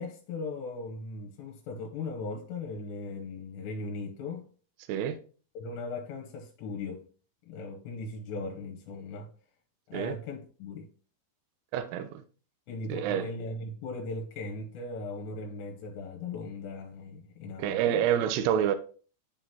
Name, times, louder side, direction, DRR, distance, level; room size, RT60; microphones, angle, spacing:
voice 1, 0.0-4.5 5.5-7.0 7.5-9.3 9.9-10.9 12.7-18.0, left 3 dB, 75° left, 2.9 m, -38 dB
voice 2, 11.7-12.2 12.9-13.3 17.6-18.8, right 10 dB, 85° right, 2.4 m, -27 dB
11.0 x 3.7 x 2.9 m
omnidirectional pair, 5.4 m